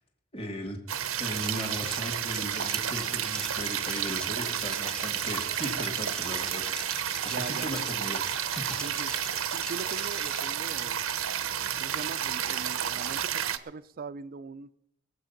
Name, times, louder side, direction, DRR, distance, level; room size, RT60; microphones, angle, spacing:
voice 1, 0.3-0.8 1.2-6.6 7.4-8.2 8.6-8.7, equal, 30° left, 2.1 m, -37 dB
sound 1, 0.9-13.6, right 9 dB, 90° right, 0.8 m, -31 dB
Liquid, 1.3-10.6, equal, 5° left, 0.7 m, -43 dB
voice 2, 7.2-7.7 8.8-11.0 11.8-14.7, right 4 dB, 45° right, 0.4 m, -41 dB
21.0 x 7.9 x 5.8 m
head